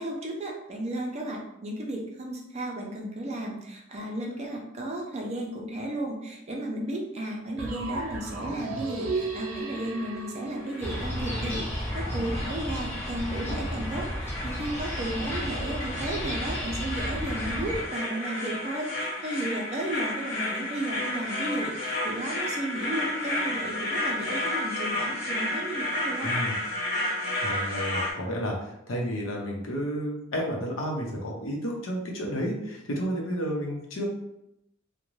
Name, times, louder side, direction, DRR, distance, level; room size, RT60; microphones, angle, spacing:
voice 1, 0.0-26.4, right 1 dB, 35° right, 0 dB, 0.5 m, -34 dB
sound 1, 7.6-11.5, right 3 dB, 80° right, 0.6 m, -35 dB
sound 2, 10.6-28.1, left 1 dB, 50° left, 1.2 m, -32 dB
sound 3, 10.8-17.8, equal, 10° left, 0.6 m, -33 dB
voice 2, 26.2-26.5 27.4-34.1, equal, 80° left, -1 dB, 0.7 m, -31 dB
2.5 x 2.1 x 3.1 m, 0.82 s
head